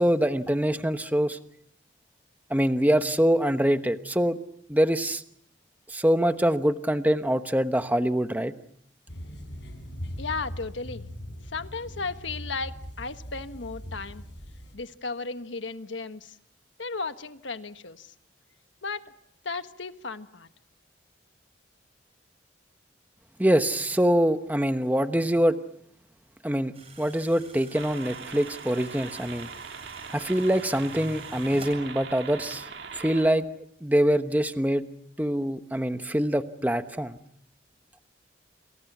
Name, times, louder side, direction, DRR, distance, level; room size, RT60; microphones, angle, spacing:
voice 1, 0.0-1.4 2.5-4.4 4.7-5.2 5.9-8.5 23.4-25.6 26.4-29.5 30.1-33.5 33.8-34.9 35.2-37.2, equal, 10° right, 9 dB, 1.1 m, -24 dB
sound 1, 9.1-14.7, equal, 70° left, 6.2 m, -40 dB
voice 2, 10.2-11.1 11.5-14.2 14.7-16.4 16.8-18.1 18.8-19.0 19.4-20.5, left 4 dB, 85° left, 9 dB, 1.4 m, -35 dB
sound 2, 26.7-31.7, right 3 dB, 35° right, 7.5 m, -48 dB
sound 3, 27.7-33.3, right 6 dB, 65° right, 2.1 m, -41 dB
28.5 x 28.0 x 6.1 m, 0.69 s
head